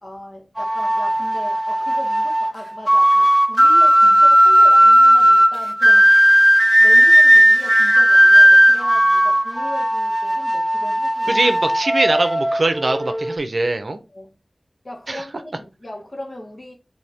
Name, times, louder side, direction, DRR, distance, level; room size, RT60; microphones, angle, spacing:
voice 1, 0.0-6.1 6.8-11.4 14.1-14.4 14.8-16.7, left 1 dB, 50° left, 1.4 m, -37 dB
sound 1, 0.6-13.4, equal, 5° right, 0.4 m, -14 dB
voice 2, 11.3-14.0 15.1-15.2, right 2 dB, 60° right, 0.6 m, -21 dB
4.1 x 2.8 x 3.5 m
wide cardioid pair, 45°, 0 cm